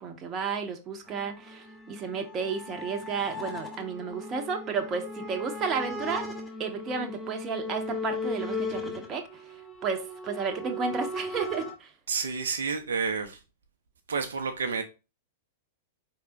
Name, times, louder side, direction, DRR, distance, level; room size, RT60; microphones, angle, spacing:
voice 1, 0.0-6.3 6.6-9.4 9.8-11.9, right 5 dB, 30° right, 0.8 m, -32 dB
sound 1, 1.1-11.7, left 2 dB, 5° left, 1.3 m, -37 dB
voice 2, 12.1-13.4 14.1-14.8, right 5 dB, 70° right, 0.6 m, -30 dB
4.7 x 3.4 x 2.9 m
figure-of-eight pair, 100°, 0 cm